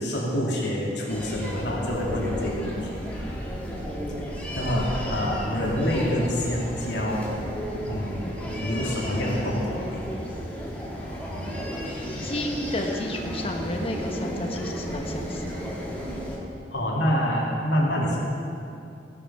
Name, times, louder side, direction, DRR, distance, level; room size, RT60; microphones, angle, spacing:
voice 1, 0.0-3.0 4.2-7.3 7.9-8.3 8.5-10.0 16.7-18.2, equal, 90° left, -4 dB, 2.8 m, -27 dB
sound 1, 1.1-16.4, equal, 10° left, 1.9 m, -33 dB
voice 2, 12.2-15.6, left 1 dB, 35° left, 3 dB, 1.2 m, -31 dB
16.0 x 8.4 x 5.6 m, 2.6 s
head